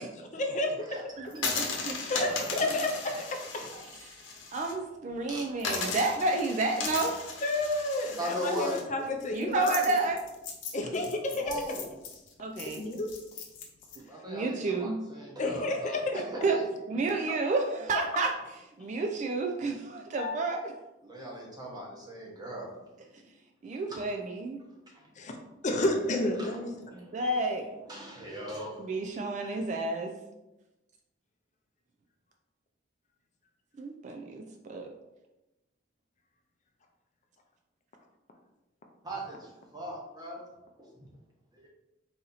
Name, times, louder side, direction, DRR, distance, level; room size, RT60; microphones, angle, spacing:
voice 1, 0.0-1.0 2.1-3.2 3.5-3.7 5.7-5.8 7.4-10.0 10.7-11.5 12.6-13.1 15.4-16.2 20.2-20.4 25.2-25.3 25.6-26.7 27.2-27.4, left 2 dB, 40° left, 3 dB, 0.5 m, -31 dB
voice 2, 1.2-2.0 4.1-4.3 4.5-7.2 9.3-10.2 12.4-12.9 14.3-15.0 16.1-16.6 16.9-18.3 18.8-20.7 23.6-24.6 26.9-27.7 28.8-30.2 33.8-34.9, right 3 dB, 40° right, 3 dB, 0.3 m, -30 dB
sound 1, 1.3-4.7 5.1-5.2 5.6-14.0, left 4 dB, 80° left, 0.8 m, -37 dB
voice 3, 8.2-8.8 11.4-11.8 14.1-16.0 16.3-16.6 18.8-18.9 21.0-22.7 23.9-24.0 26.4-27.2 27.9-28.9 29.4-29.5 39.0-40.4 40.8-40.9, equal, 20° right, -2 dB, 1.0 m, -38 dB
4.1 x 2.8 x 3.9 m, 0.98 s
head